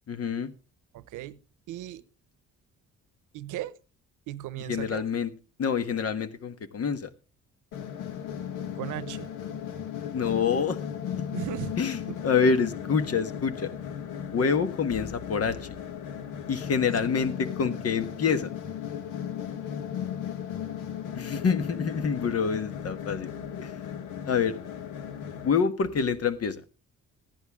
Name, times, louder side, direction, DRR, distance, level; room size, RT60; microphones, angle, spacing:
voice 1, 0.1-0.5 4.7-5.3 5.6-7.1 10.1-10.8 11.2-11.3 11.8-13.7 14.3-15.7 16.5-18.5 21.1-23.3 23.6-23.7 24.3-24.6 25.4-26.6, left 6 dB, 55° left, 1.4 m, -27 dB
voice 2, 0.9-1.4 1.7-2.0 3.3-3.7 4.3-5.1 8.8-9.3 11.3-11.7 12.1-12.2 17.0-17.1, right 13 dB, 85° right, 0.9 m, -36 dB
sound 1, 7.7-25.5, left 9 dB, 85° left, 1.5 m, -36 dB
15.0 x 10.5 x 3.6 m
cardioid pair, 90°, 30 cm